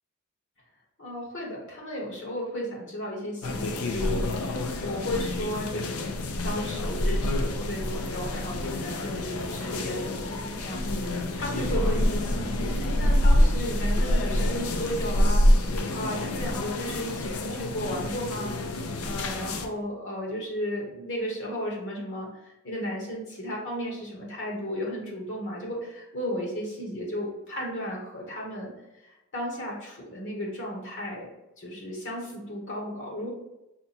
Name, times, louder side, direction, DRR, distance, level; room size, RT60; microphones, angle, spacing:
voice 1, 1.0-4.3 4.8-15.4 15.9-18.5 19.0-28.7 29.0-31.3 31.6-33.3, equal, 60° left, -2 dB, 1.2 m, -34 dB
sound 1, 3.4-19.7, left 1 dB, 85° left, 0.5 m, -27 dB
5.6 x 2.2 x 4.2 m, 0.93 s
head